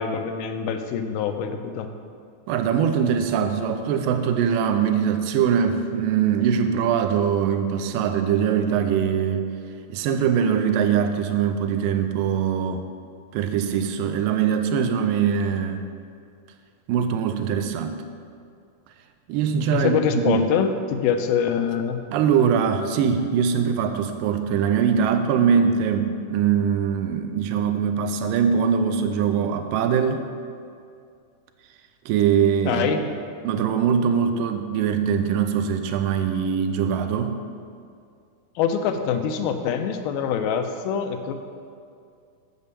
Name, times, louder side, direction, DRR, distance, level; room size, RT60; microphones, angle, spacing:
voice 1, 0.0-1.9 19.7-22.0 32.7-33.0 38.6-41.3, left 7 dB, 85° left, 7 dB, 2.4 m, -24 dB
voice 2, 2.5-9.5 9.9-12.8 13.3-15.8 16.9-18.0 19.3-20.5 22.1-30.3 32.1-32.9 33.4-37.4, right 7 dB, 85° right, 7 dB, 2.0 m, -22 dB
7.2 x 6.7 x 6.8 m, 2.3 s
omnidirectional pair, 4.4 m